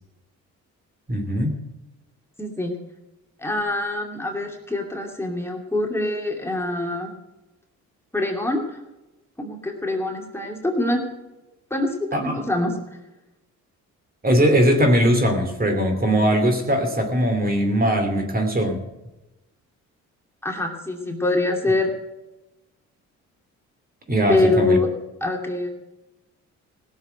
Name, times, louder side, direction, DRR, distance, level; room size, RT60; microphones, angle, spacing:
voice 1, 1.1-1.6 12.1-12.4 14.2-18.8 24.1-24.8, equal, 30° right, 5 dB, 2.7 m, -20 dB
voice 2, 2.4-2.7 3.4-7.1 8.1-8.6 9.4-11.0 11.7-12.8 20.4-21.9 24.3-24.9 25.2-25.7, left 2 dB, 10° left, 1 dB, 2.6 m, -24 dB
16.5 x 7.2 x 7.8 m, 1.0 s
cardioid pair, 90°, 30 cm